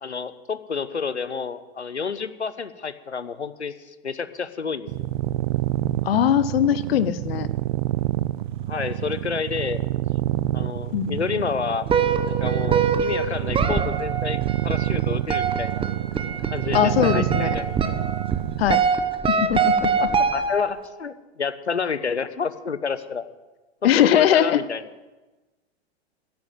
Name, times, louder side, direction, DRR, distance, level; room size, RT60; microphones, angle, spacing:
voice 1, 0.0-3.7 4.0-4.9 8.7-9.8 10.5-11.9 12.3-15.8 16.5-18.0 20.0-23.3 23.8-24.8, left 5 dB, 85° left, 14 dB, 1.0 m, -29 dB
sound 1, 4.9-18.7, right 15 dB, 45° right, 0.6 m, -27 dB
voice 2, 6.0-7.5 10.9-11.2 16.7-17.6 18.6-18.8 19.3-19.9 23.8-24.6, left 10 dB, 65° left, 15 dB, 0.8 m, -20 dB
sound 2, 11.9-20.9, right 6 dB, 15° right, 1.2 m, -24 dB
14.0 x 10.5 x 7.6 m, 1.2 s
figure-of-eight pair, 100°, 33 cm